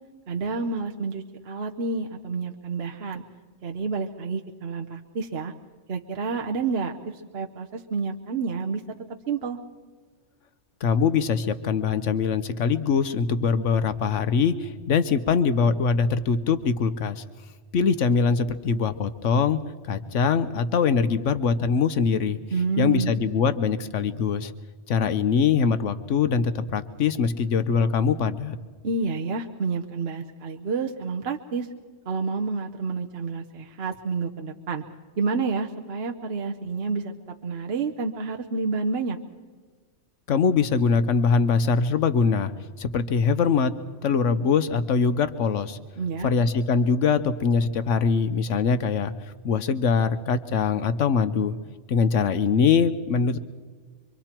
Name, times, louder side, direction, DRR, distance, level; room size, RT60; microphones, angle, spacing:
voice 1, 0.3-3.2 3.6-5.5 5.9-8.8 9.3-9.6 22.5-23.1 28.8-31.7 32.0-34.8 35.2-37.1 37.4-39.2 46.0-46.3, right 4 dB, 60° right, 3 dB, 1.2 m, -29 dB
voice 2, 10.8-17.2 17.7-22.4 22.8-24.5 24.9-28.6 40.3-42.5 42.8-43.7 44.0-45.8 46.2-49.1 49.4-51.5 51.9-53.4, left 5 dB, 85° left, 12 dB, 1.2 m, -23 dB
26.5 x 24.0 x 4.5 m, 1.5 s
omnidirectional pair, 1.2 m